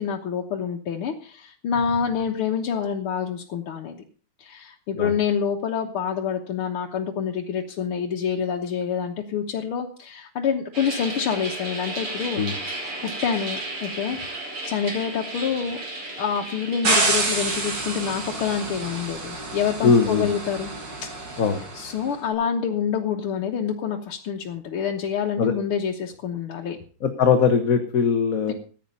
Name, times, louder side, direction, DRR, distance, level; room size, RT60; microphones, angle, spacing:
voice 1, 0.0-4.0 4.4-12.7 13.0-14.2 14.7-15.8 16.2-20.7 21.0-21.4 21.7-26.8, left 7 dB, 75° left, 0 dB, 2.1 m, -27 dB
sound 1, 10.7-19.1, right 2 dB, 80° right, 5.9 m, -34 dB
sound 2, 16.8-22.0, right 2 dB, 55° right, 3.5 m, -28 dB
voice 2, 19.8-20.3 21.4-21.6 25.4-25.5 27.0-28.5, left 6 dB, 45° left, 6 dB, 1.4 m, -20 dB
15.0 x 9.5 x 5.4 m, 0.41 s
omnidirectional pair, 2.4 m